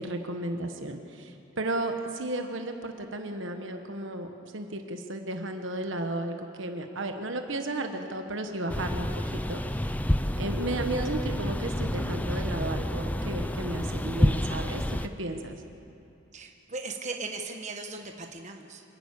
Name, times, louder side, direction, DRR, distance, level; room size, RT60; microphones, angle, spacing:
voice 1, 0.0-4.3 4.5-9.6 10.4-15.6, right 2 dB, 60° right, 5 dB, 1.3 m, -34 dB
sound 1, 8.7-15.1, left 1 dB, 5° left, 0.5 m, -29 dB
voice 2, 16.3-18.8, right 3 dB, 35° right, 3 dB, 1.3 m, -38 dB
26.5 x 11.5 x 8.6 m, 2.7 s
head